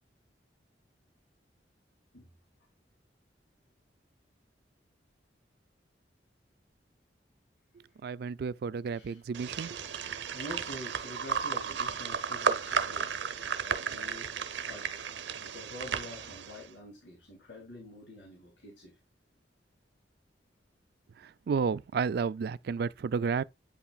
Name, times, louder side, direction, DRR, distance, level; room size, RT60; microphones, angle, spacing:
voice 1, 8.0-9.8 21.2-23.4, right 5 dB, 60° right, 0.3 m, -32 dB
voice 2, 8.9-9.2 10.3-13.2 13.6-15.0 15.4-19.0, left 1 dB, 90° left, 2.7 m, -47 dB
sound 1, 9.3-16.6, right 6 dB, 85° right, 0.8 m, -34 dB
8.4 x 5.7 x 2.3 m
head